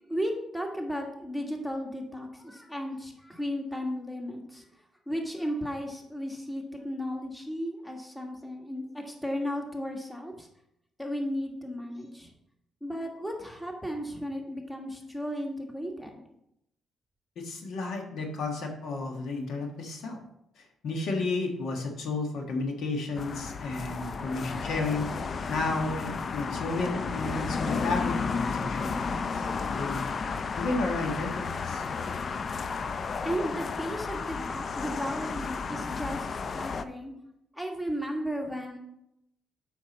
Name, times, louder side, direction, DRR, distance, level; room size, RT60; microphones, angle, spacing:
voice 1, 0.0-4.6 5.1-10.5 11.0-12.3 12.8-16.2 33.2-37.1 37.5-38.8, equal, 5° left, 1 dB, 1.6 m, -34 dB
voice 2, 17.4-20.2 20.6-25.2 25.5-30.0 30.6-31.8, left 3 dB, 70° left, 2 dB, 1.4 m, -32 dB
sound 1, 23.2-36.8, left 5 dB, 45° left, 0.5 m, -33 dB
7.5 x 5.8 x 4.1 m, 0.79 s
cardioid pair, 90°, 0 cm